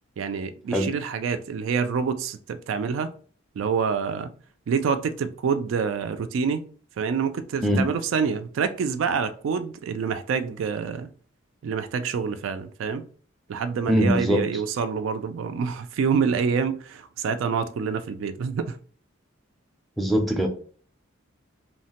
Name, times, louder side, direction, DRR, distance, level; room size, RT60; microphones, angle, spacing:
voice 1, 0.2-3.1 3.6-4.3 4.7-6.7 7.0-11.1 11.6-13.1 13.5-18.8, right 6 dB, 70° right, 0.3 m, -27 dB
voice 2, 13.9-14.4 20.0-20.5, equal, ahead, 0.4 m, -21 dB
3.1 x 2.1 x 2.8 m
head